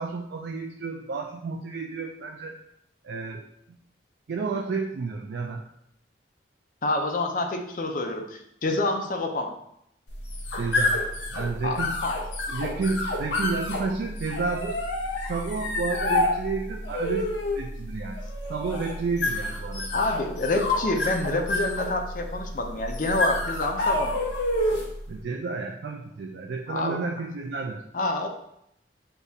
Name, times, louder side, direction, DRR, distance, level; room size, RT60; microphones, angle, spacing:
voice 1, 0.0-2.6 3.0-3.4 4.3-5.6 10.6-11.0 11.3-11.9 12.5-14.8 15.3-18.2 18.5-19.9 25.1-27.8, right 4 dB, 70° right, 1 dB, 0.4 m, -31 dB
voice 2, 6.8-9.5 11.6-12.2 19.9-24.2 26.7-27.0 27.9-28.3, left 2 dB, 50° left, 4 dB, 0.5 m, -27 dB
sound 1, 10.1-25.0, left 2 dB, 85° left, 0.7 m, -29 dB
6.6 x 2.3 x 2.7 m, 0.76 s
head